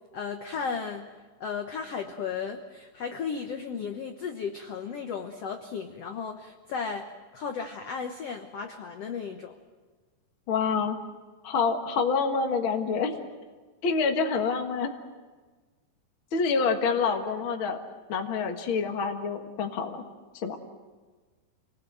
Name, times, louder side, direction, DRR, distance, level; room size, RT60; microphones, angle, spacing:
voice 1, 0.1-1.1 1.4-9.5, left 6 dB, 75° left, 5 dB, 1.4 m, -35 dB
voice 2, 10.5-11.0 11.4-13.2 13.8-14.9 16.3-17.8 18.1-20.0 20.4-20.6, left 5 dB, 55° left, 4 dB, 1.5 m, -27 dB
27.5 x 19.5 x 7.8 m, 1.4 s
omnidirectional pair, 4.5 m